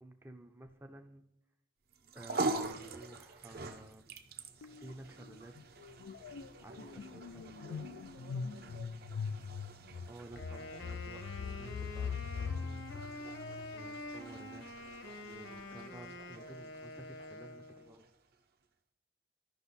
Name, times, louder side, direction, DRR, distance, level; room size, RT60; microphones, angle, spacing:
voice 1, 0.0-1.2 2.1-4.2 4.8-5.5 6.6-7.2 7.5-7.9 10.1-14.6 15.2-18.1, right 1 dB, 10° right, 5 dB, 0.5 m, -53 dB
sound 1, 1.9-18.4, right 2 dB, 50° right, 0.7 m, -45 dB
sound 2, 4.6-4.9 5.2-14.0, left 6 dB, 90° left, 0.3 m, -42 dB
voice 2, 6.7-8.9, right 3 dB, 85° right, 2 dB, 1.3 m, -57 dB
Wind instrument woodwind instrument, 10.4-18.0, left 1 dB, 70° left, 1.1 m, -47 dB
13.5 x 5.7 x 4.1 m, 0.83 s
head